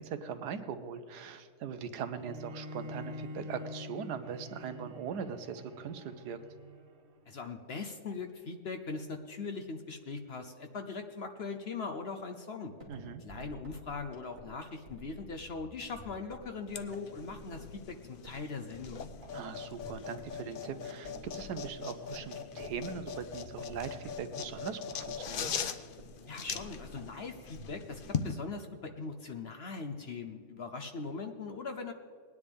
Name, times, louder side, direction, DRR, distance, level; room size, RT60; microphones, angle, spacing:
voice 1, 0.0-6.4 12.9-13.2 19.3-25.6, right 6 dB, 85° right, 9 dB, 1.4 m, -40 dB
Bowed string instrument, 2.2-7.4, left 1 dB, 45° right, 0.8 m, -46 dB
voice 2, 7.3-12.7 13.2-19.1 26.3-31.9, left 4 dB, 50° left, 6 dB, 0.8 m, -40 dB
sound 1, 12.8-28.2, equal, 30° right, 2.6 m, -52 dB
sound 2, 16.7-28.3, left 7 dB, 80° left, 0.4 m, -41 dB
20.0 x 9.9 x 3.5 m, 2.1 s
omnidirectional pair, 1.7 m